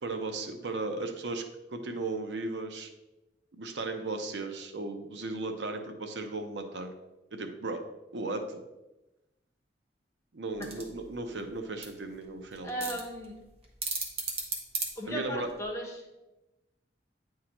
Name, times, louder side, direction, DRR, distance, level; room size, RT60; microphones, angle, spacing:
voice 1, 0.0-1.4 1.7-2.9 3.5-6.9 7.3-7.8 8.1-8.6 10.3-12.9 15.1-15.5, right 2 dB, 90° right, 6 dB, 0.7 m, -36 dB
sound 1, 10.5-15.6, right 3 dB, 35° right, 1.0 m, -38 dB
voice 2, 12.6-13.4 15.0-16.0, equal, 15° left, -2 dB, 1.3 m, -36 dB
9.5 x 3.7 x 3.0 m, 1.0 s
head